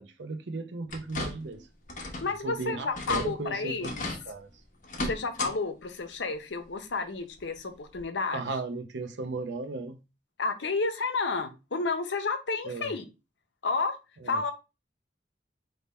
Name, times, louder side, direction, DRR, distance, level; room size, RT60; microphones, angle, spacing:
voice 1, 0.0-1.7 2.4-4.6 8.3-10.0 12.6-13.0 14.2-14.4, right 3 dB, 85° right, 0.7 m, -36 dB
sound 1, 0.9-1.6 1.9-2.3 2.6-2.7 2.9-3.3 3.8-4.2 4.8-5.5 5.9-6.0 7.4-7.5 8.0-8.1, left 2 dB, 45° left, 0.9 m, -35 dB
voice 2, 2.2-4.1 5.0-8.4 10.4-13.0 13.6-14.0 14.3-14.5, left 4 dB, 85° left, 0.7 m, -31 dB
3.5 x 2.7 x 4.2 m
head